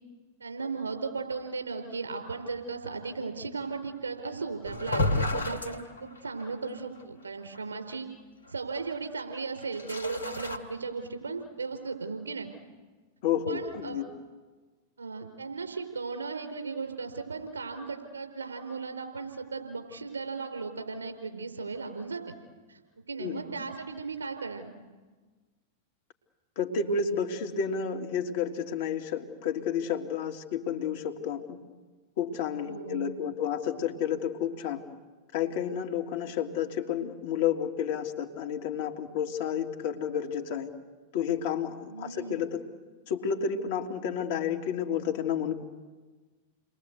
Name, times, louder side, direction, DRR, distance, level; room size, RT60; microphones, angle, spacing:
voice 1, 0.4-8.1 8.5-12.5 13.5-14.0 15.0-22.4 22.7-22.8 23.1-24.7 32.6-33.1 41.9-42.4, right 4 dB, 80° right, 6 dB, 4.5 m, -36 dB
sound 1, 4.6-6.6 7.0-7.1 7.5-7.6 9.6-10.6, left 2 dB, 85° left, 2.5 m, -31 dB
voice 2, 13.2-14.1 23.2-23.4 26.6-31.6 32.2-34.8 35.3-40.7 41.1-42.6 43.1-45.5, left 7 dB, 55° left, 4 dB, 2.8 m, -31 dB
30.0 x 22.0 x 8.2 m, 1.4 s
figure-of-eight pair, 95°, 0 cm